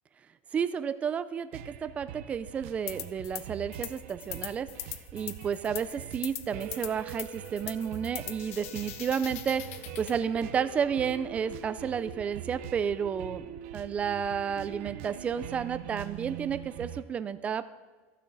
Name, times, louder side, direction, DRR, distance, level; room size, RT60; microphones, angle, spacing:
voice 1, 0.5-4.7 5.1-17.6, right 7 dB, 20° right, 13 dB, 0.4 m, -31 dB
sound 1, 1.5-17.0, right 11 dB, 65° right, 0.6 m, -43 dB
sound 2, 2.9-3.4 3.7-10.2, left 12 dB, 80° left, 0.6 m, -41 dB
14.5 x 6.3 x 3.9 m, 1.3 s
supercardioid pair, 165°, 7 cm